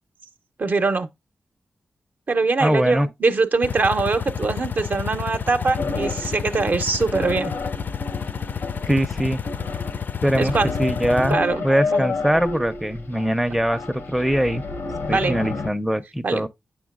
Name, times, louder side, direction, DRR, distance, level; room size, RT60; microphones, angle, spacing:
voice 1, 0.6-1.1 2.3-7.5 10.4-10.7 11.3-11.6 11.9-12.1 15.1-15.3 16.2-16.4, right 3 dB, 50° right, 0.6 m, -22 dB
voice 2, 2.6-3.1 8.9-9.4 10.2-10.5 10.8-11.4 11.6-14.6 15.1-16.5, equal, 5° right, 0.5 m, -22 dB
sound 1, 3.6-11.3, left 7 dB, 55° left, 0.4 m, -30 dB
sound 2, 5.8-15.7, left 3 dB, 90° left, 0.8 m, -30 dB
7.1 x 5.8 x 2.3 m
cardioid pair, 60°, 4 cm